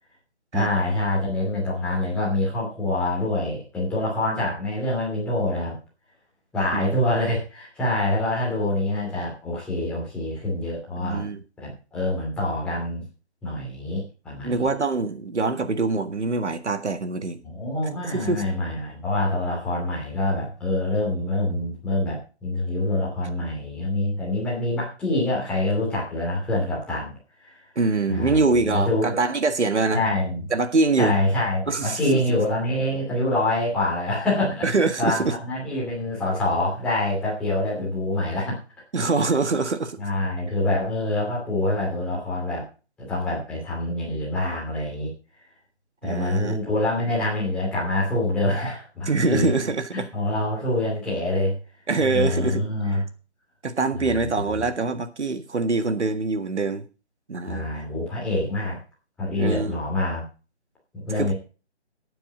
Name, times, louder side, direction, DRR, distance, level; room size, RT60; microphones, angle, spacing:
voice 1, 0.5-5.8 6.5-11.3 11.6-13.0 13.4-14.7 17.4-27.1 27.4-27.5 28.1-29.2 29.9-30.5 31.0-34.6 35.0-38.6 40.0-42.7 43.0-45.1 46.0-49.5 49.9-51.6 52.0-53.0 53.9-54.6 57.5-58.8 59.2-60.2 61.1-61.3, left 1 dB, 5° left, 2.8 m, -26 dB
voice 2, 11.0-11.4 14.4-17.4 18.1-18.5 27.8-30.0 30.5-31.2 31.7-32.0 34.6-35.4 38.9-40.0 46.0-46.6 49.1-50.1 51.9-53.0 53.6-56.8 57.3-57.7 59.4-59.7 61.2-61.3, right 3 dB, 85° right, 1.8 m, -24 dB
11.5 x 9.1 x 5.0 m
hypercardioid pair, 170°, 34 cm